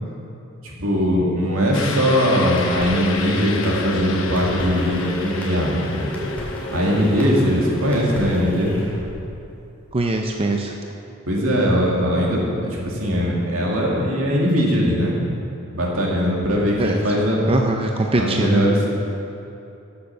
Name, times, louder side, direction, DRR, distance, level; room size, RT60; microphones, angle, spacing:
voice 1, 0.6-6.1 6.7-8.8 11.3-15.2 15.7-17.4 18.1-18.9, equal, 75° right, -3 dB, 2.3 m, -20 dB
sound 1, 1.7-8.4, left 5 dB, 65° left, 1.0 m, -32 dB
sound 2, 2.0-10.0, left 2 dB, 5° left, 2.2 m, -32 dB
voice 2, 9.9-10.7 16.8-17.0 17.5-18.6, right 2 dB, 25° right, 2 dB, 0.6 m, -21 dB
11.5 x 7.0 x 6.5 m, 2.7 s
head